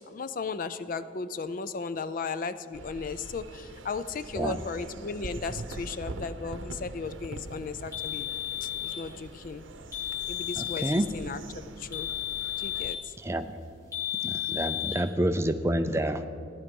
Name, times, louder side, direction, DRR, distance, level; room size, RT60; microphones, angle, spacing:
voice 1, 0.1-8.3 8.6-9.7 10.3-11.4 11.8-12.1 12.6-13.1, left 4 dB, 45° left, 13 dB, 0.4 m, -36 dB
sound 1, 2.7-12.9, right 2 dB, 80° right, 0.8 m, -43 dB
sound 2, 7.9-9.0 9.9-11.0 11.9-13.1 13.9-15.0, left 13 dB, 15° left, 2.3 m, -33 dB
voice 2, 10.6-11.1 13.2-13.5 14.2-16.3, right 1 dB, 15° right, 9 dB, 0.4 m, -28 dB
15.0 x 11.0 x 5.3 m, 2.4 s
head